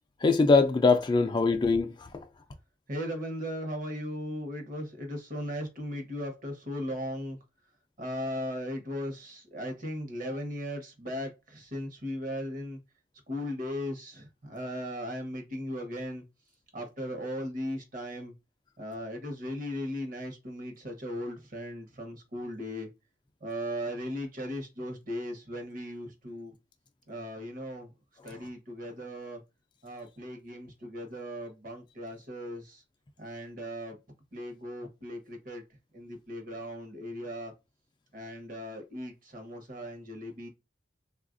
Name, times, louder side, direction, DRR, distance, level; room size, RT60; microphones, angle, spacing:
voice 1, 0.2-2.3, left 4 dB, 25° left, 0.3 m, -23 dB
voice 2, 2.9-7.4 8.0-12.8 13.3-16.2 16.7-18.3 18.8-22.9 23.4-26.5 27.1-27.9 28.2-29.4 29.8-32.8 33.2-34.0 34.3-35.6 35.9-37.5 38.1-40.5, equal, 50° right, 0.9 m, -37 dB
3.4 x 2.3 x 2.5 m
head